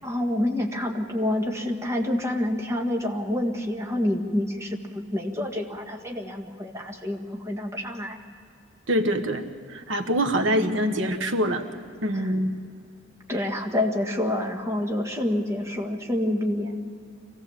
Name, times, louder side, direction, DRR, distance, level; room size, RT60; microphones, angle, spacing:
voice 1, 0.0-8.2 12.1-12.3 13.3-16.7, left 1 dB, 15° right, 1 dB, 1.7 m, -27 dB
voice 2, 8.9-9.4 9.7-11.6 12.0-12.5, equal, 90° right, 7 dB, 1.4 m, -24 dB
25.0 x 16.5 x 7.2 m, 2.3 s
head